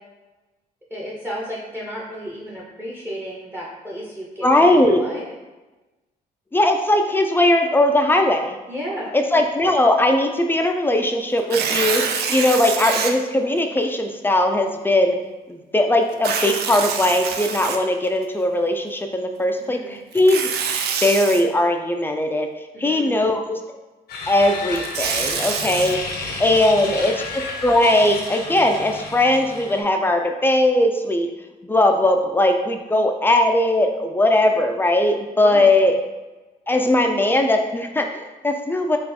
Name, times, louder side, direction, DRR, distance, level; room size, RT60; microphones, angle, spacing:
voice 1, 0.9-5.2 8.7-9.1 19.6-20.0 22.7-23.4 26.6-27.1 35.3-36.0, equal, 15° right, -4 dB, 0.7 m, -33 dB
voice 2, 4.4-5.0 6.5-8.6 9.1-15.2 15.5-20.5 21.0-22.5 22.8-23.6 24.3-31.3 31.6-36.0 36.7-39.0, left 1 dB, 15° left, 4 dB, 0.4 m, -19 dB
Tearing, 11.4-13.1 13.8-13.9 16.1-18.2 20.1-21.4 24.5-25.9, right 6 dB, 80° right, 0.5 m, -25 dB
sound 1, 24.1-29.8, left 3 dB, 85° left, 0.8 m, -32 dB
4.3 x 2.4 x 4.1 m, 1.1 s
cardioid pair, 130°, 16 cm